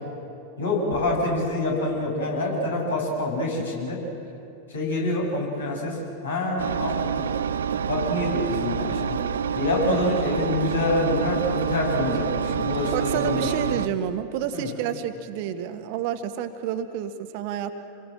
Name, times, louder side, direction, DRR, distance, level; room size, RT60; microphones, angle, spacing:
voice 1, 0.6-4.0 4.7-6.0 6.2-7.4 7.9-9.2 9.5-13.5 14.5-14.7, left 2 dB, 70° left, -2 dB, 7.6 m, -26 dB
Engine, 6.6-13.9, right 7 dB, 65° right, 0.6 m, -27 dB
voice 2, 12.9-17.7, right 9 dB, 45° right, 8 dB, 1.5 m, -29 dB
28.5 x 22.0 x 7.5 m, 2.7 s
figure-of-eight pair, 90°, 0 cm